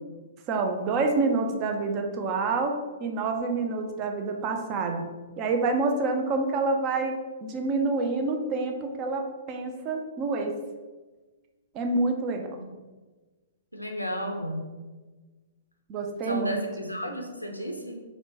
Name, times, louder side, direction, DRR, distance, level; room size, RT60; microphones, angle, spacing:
voice 1, 0.5-2.7 3.0-5.1 5.4-7.1 7.4-9.2 9.5-10.5 11.7-12.5 15.9-16.6, right 3 dB, 30° right, 4 dB, 0.4 m, -27 dB
voice 2, 13.7-14.7 16.2-18.0, equal, 90° left, 3 dB, 0.4 m, -33 dB
4.1 x 2.1 x 2.8 m, 1.3 s
figure-of-eight pair, 115°, 0 cm